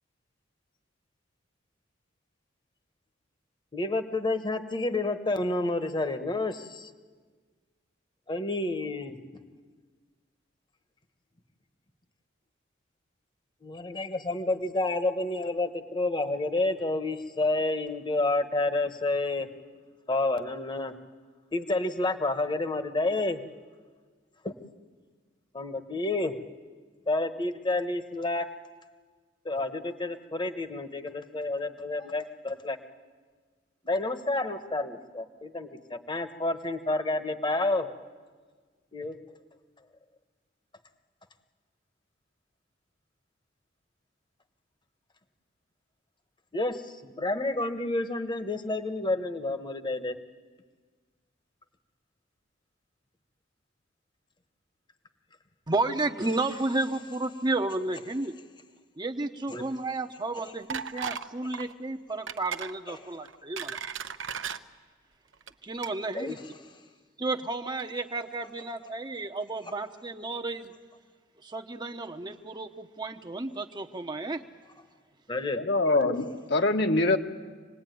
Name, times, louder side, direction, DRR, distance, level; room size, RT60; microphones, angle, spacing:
voice 1, 3.7-6.9 8.3-9.2 13.6-19.5 20.1-20.9 21.5-23.4 24.4-24.5 25.5-26.3 27.1-28.5 29.4-32.8 33.8-37.9 38.9-39.2 46.5-50.2 59.5-59.6 62.9-63.0 66.1-66.3 75.3-75.6, left 2 dB, 25° left, 9 dB, 1.2 m, -29 dB
voice 2, 55.7-58.3 59.0-63.8 65.6-66.4 67.2-70.7 71.4-74.4, right 2 dB, 25° right, 5 dB, 0.9 m, -32 dB
sound 1, 60.7-61.3 61.5-61.7 62.3-62.7 63.3-64.6 65.3-65.5 65.8-65.9, right 7 dB, 80° right, 0.9 m, -35 dB
voice 3, 75.5-77.2, left 2 dB, 65° left, 4 dB, 1.5 m, -24 dB
26.0 x 19.5 x 9.3 m, 1.5 s
head